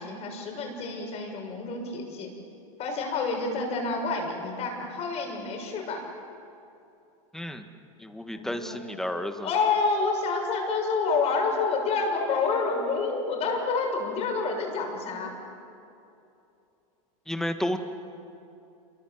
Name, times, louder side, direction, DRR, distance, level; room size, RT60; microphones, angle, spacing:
voice 1, 0.0-2.3 2.8-6.0 8.3-8.8 9.4-15.3, left 4 dB, 35° left, 2 dB, 6.7 m, -28 dB
voice 2, 7.3-7.6 8.0-9.5 17.3-17.8, left 1 dB, ahead, 7 dB, 1.8 m, -31 dB
28.0 x 23.5 x 8.1 m, 2.7 s
supercardioid pair, 125°, 18 cm